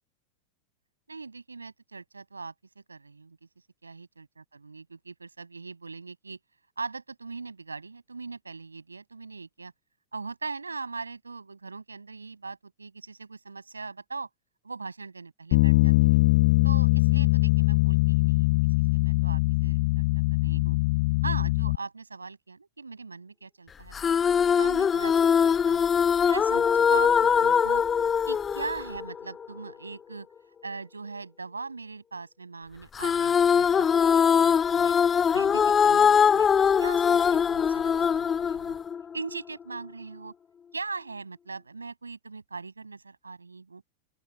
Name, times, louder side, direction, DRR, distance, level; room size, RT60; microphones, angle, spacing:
voice 1, 1.1-3.4 3.8-6.4 6.8-9.7 10.1-14.3 14.6-16.2 16.6-18.6 18.9-20.8 21.2-23.9 24.5-27.8 28.3-30.3 30.6-34.9 35.3-36.5 36.8-38.8 39.1-40.3 40.7-43.8, right 4 dB, 80° right, 7.2 m, -40 dB
Bass guitar, 15.5-21.8, left 21 dB, 50° left, 0.4 m, -22 dB
sound 1, 23.9-29.5 33.0-39.4, left 7 dB, 20° left, 1.6 m, -22 dB
open air
figure-of-eight pair, 90°, 0 cm